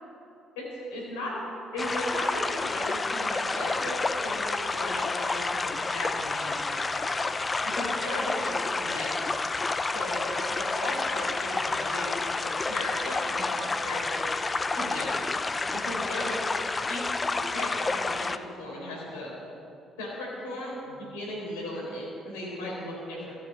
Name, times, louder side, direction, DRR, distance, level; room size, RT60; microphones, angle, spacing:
voice 1, 0.9-1.4 1.7-3.9 4.2-7.2 7.6-8.5 8.8-9.2 9.9-14.3 14.7-15.3 15.6-16.4 16.9-17.0 17.3-19.3 20.0-23.4, left 1 dB, 85° left, -4 dB, 4.2 m, -36 dB
sound 1, 1.8-18.4, left 3 dB, 30° left, 0.7 m, -29 dB
14.5 x 8.1 x 9.4 m, 2.7 s
hypercardioid pair, 55°, 0 cm